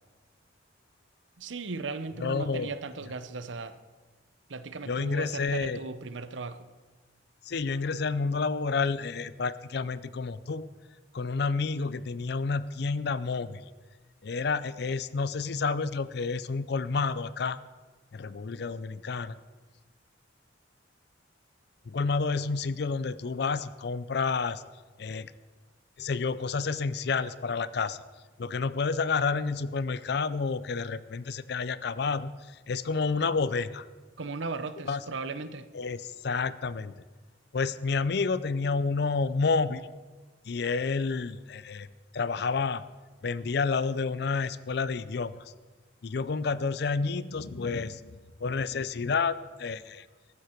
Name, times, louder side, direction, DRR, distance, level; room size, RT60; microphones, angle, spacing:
voice 1, 1.4-3.8 4.5-6.7 34.2-35.7, right 4 dB, 80° right, 0.8 m, -37 dB
voice 2, 2.2-2.7 4.9-5.8 7.4-10.7 11.1-13.6 14.2-17.6 18.1-19.4 21.9-24.6 25.0-25.3 26.0-28.0 28.4-33.9 34.8-35.0 35.7-36.9 37.5-39.9 40.4-41.9 42.1-42.8 43.2-45.5 46.0-50.1, left 4 dB, 60° left, 0.5 m, -30 dB
15.0 x 13.0 x 4.5 m
head